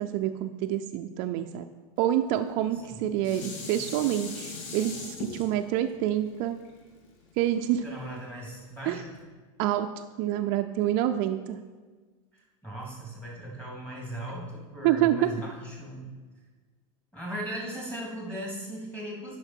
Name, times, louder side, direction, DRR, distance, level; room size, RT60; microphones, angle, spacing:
voice 1, 0.0-1.7 2.0-6.6 7.4-7.8 8.9-9.0 9.6-9.9 10.2-11.6 14.8-15.2, right 12 dB, 55° right, 7 dB, 0.5 m, -27 dB
Dishes pots and pans, 2.6-7.9 8.5-8.6, left 3 dB, 65° left, 1.6 m, -40 dB
voice 2, 7.8-9.2 12.6-16.1 17.1-19.4, right 1 dB, 10° left, -4 dB, 3.0 m, -38 dB
9.7 x 5.7 x 4.5 m, 1.4 s
hypercardioid pair, 110°, 17 cm